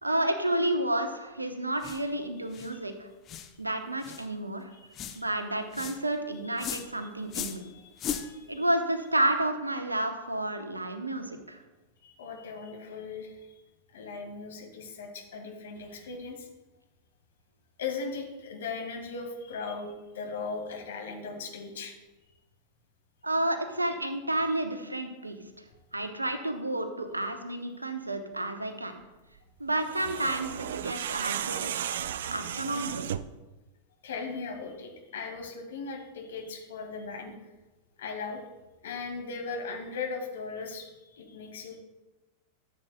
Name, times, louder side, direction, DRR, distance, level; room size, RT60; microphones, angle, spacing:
voice 1, 0.0-3.1 3.6-4.7 5.2-7.6 8.5-11.6 23.2-25.6 25.9-29.0 29.6-31.7 32.3-33.1, right 1 dB, 85° right, 7 dB, 0.9 m, -30 dB
sound 1, 1.8-2.0 2.5-2.7 3.3-3.5 4.0-4.3 4.9-5.2 5.7-6.0 6.6-6.9 7.3-7.6 8.0-8.3, left 8 dB, 30° left, 0.7 m, -36 dB
voice 2, 4.7-5.2 6.4-6.6 7.5-8.7 12.0-13.5 13.9-16.5 17.8-21.9 23.8-23.9 34.0-37.3 38.0-38.4 38.8-41.8, left 4 dB, 60° left, 2 dB, 1.7 m, -38 dB
sound 2, 29.8-33.4, right 10 dB, 60° right, 0.3 m, -34 dB
14.0 x 7.6 x 2.2 m, 1.1 s
figure-of-eight pair, 90°, 0 cm